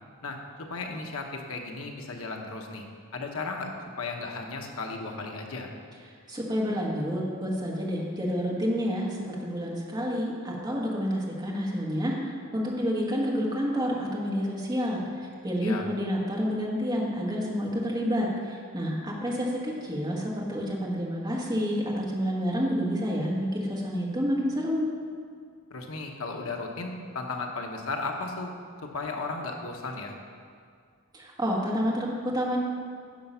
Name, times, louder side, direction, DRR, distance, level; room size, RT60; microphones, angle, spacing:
voice 1, 0.2-2.9 3.1-3.7 4.0-5.7 15.6-15.8 25.7-28.5 28.9-30.1, left 3 dB, 80° left, 2 dB, 1.0 m, -35 dB
voice 2, 6.3-24.9 31.1-32.6, equal, 20° right, -3 dB, 1.5 m, -29 dB
10.5 x 5.8 x 5.6 m, 2.2 s
head